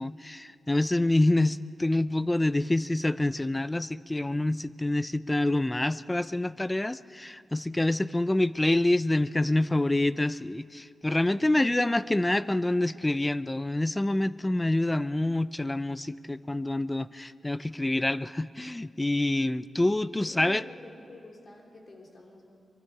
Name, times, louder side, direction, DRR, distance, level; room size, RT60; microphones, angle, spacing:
voice 1, 0.0-20.6, left 1 dB, 10° left, 16 dB, 0.4 m, -27 dB
voice 2, 20.2-22.4, left 2 dB, 40° left, 0 dB, 3.2 m, -48 dB
24.0 x 23.5 x 4.8 m, 2.5 s
wide cardioid pair, 150°, 0 cm